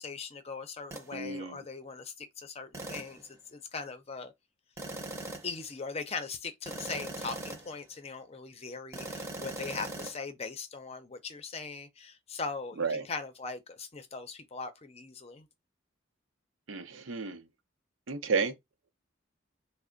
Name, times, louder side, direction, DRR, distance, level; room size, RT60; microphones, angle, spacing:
voice 1, 0.0-4.3 5.4-15.5, left 4 dB, 30° left, 0.5 m, -40 dB
sound 1, 0.9-1.1 2.7-3.2 4.8-5.6 6.7-7.8 8.9-10.1, right 2 dB, 15° right, 0.7 m, -40 dB
voice 2, 1.1-1.6 12.8-13.0 16.7-17.4 18.1-18.5, right 4 dB, 85° right, 0.6 m, -32 dB
3.3 x 2.0 x 3.7 m
head